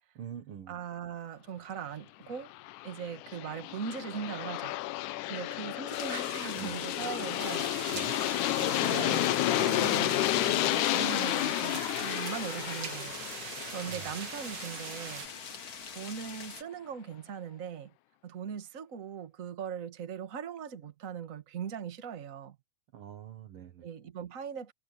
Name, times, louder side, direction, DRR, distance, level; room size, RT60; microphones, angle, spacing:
voice 1, 0.1-0.8 6.6-6.8 7.9-8.2 13.9-14.1 22.9-23.9, right 9 dB, 60° right, 1.5 m, -45 dB
voice 2, 0.7-2.5 2.8-4.8 5.3-7.9 8.5-15.3 15.9-17.9 18.2-22.6 23.8-24.7, right 7 dB, 35° right, 1.4 m, -40 dB
Aircraft, 2.5-15.3, left 17 dB, 80° left, 2.1 m, -31 dB
sound 1, 5.9-16.6, left 5 dB, 40° left, 1.6 m, -45 dB
sound 2, 7.4-15.3, right 9 dB, 85° right, 3.6 m, -42 dB
omnidirectional pair, 3.7 m